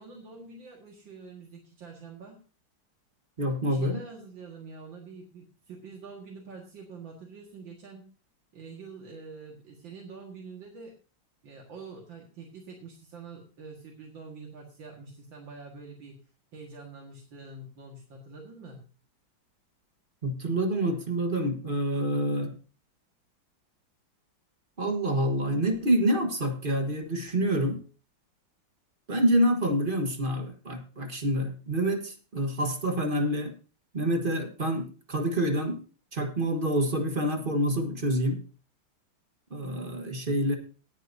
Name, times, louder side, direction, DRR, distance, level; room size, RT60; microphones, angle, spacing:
voice 1, 0.0-2.4 3.5-8.1 8.5-10.9 11.4-16.2 16.5-18.8, right 4 dB, 70° right, -1 dB, 2.6 m, -46 dB
voice 2, 3.4-4.0 20.2-22.5 24.8-27.8 29.1-33.5 33.9-35.8 36.1-38.4 39.5-40.6, right 1 dB, 30° right, 5 dB, 1.4 m, -27 dB
18.0 x 8.9 x 2.7 m, 0.37 s
omnidirectional pair, 2.1 m